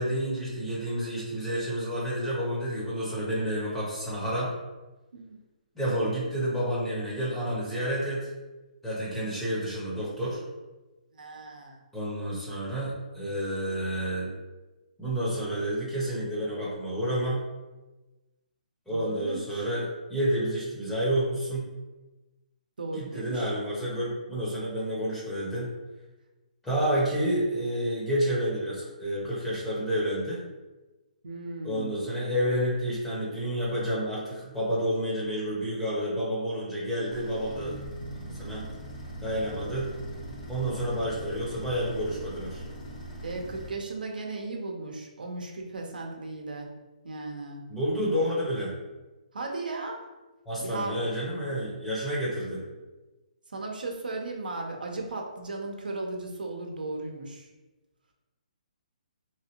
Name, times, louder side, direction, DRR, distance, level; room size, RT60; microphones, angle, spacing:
voice 1, 0.0-4.5 5.7-8.3 8.8-10.4 11.9-14.3 15.0-17.4 18.9-21.7 22.9-25.7 26.6-30.4 31.6-37.8 38.1-38.7 39.2-39.9 40.5-42.6 47.7-48.8 50.5-52.6, equal, 5° left, -8 dB, 0.7 m, -29 dB
voice 2, 11.1-11.8 18.9-19.7 22.8-23.5 31.2-31.9 43.2-46.7 47.0-47.6 49.3-50.0 50.6-51.1 53.5-57.5, right 3 dB, 90° right, 1 dB, 0.6 m, -36 dB
sound 1, 37.1-43.7, right 1 dB, 55° left, 1.3 m, -41 dB
3.0 x 2.4 x 2.9 m, 1.1 s
hypercardioid pair, 155°, 5 cm